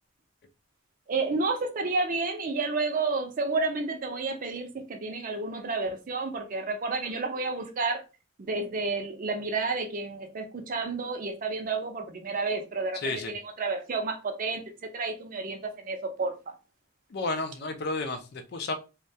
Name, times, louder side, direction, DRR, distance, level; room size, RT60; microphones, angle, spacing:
voice 1, 1.1-8.0 8.4-16.5, right 3 dB, 40° right, 0.4 m, -31 dB
voice 2, 12.9-13.3 17.1-18.7, left 2 dB, 50° left, 0.4 m, -32 dB
2.2 x 2.1 x 2.6 m
head